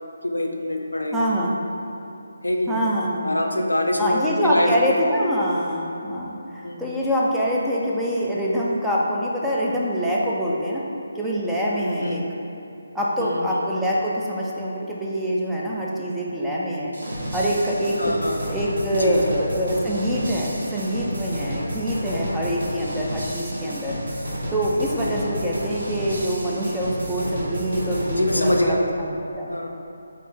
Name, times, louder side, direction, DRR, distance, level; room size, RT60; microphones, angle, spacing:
voice 1, 0.2-1.3 2.4-2.9 3.2-4.7 6.6-6.8 11.8-12.2 13.2-13.6 18.0-18.4 18.9-19.3 28.1-28.8 29.5-29.7, left 1 dB, 85° left, 2 dB, 0.5 m, -24 dB
voice 2, 1.1-1.6 2.7-3.4 4.0-10.8 11.1-12.2 12.9-16.9 17.3-18.1 18.5-24.0 24.5-29.1 29.4-29.6, equal, 5° right, -7 dB, 0.4 m, -25 dB
sound 1, 16.9-28.6, equal, 60° right, 1.2 m, -31 dB
4.9 x 2.8 x 3.8 m, 2.9 s
figure-of-eight pair, 150°, 0 cm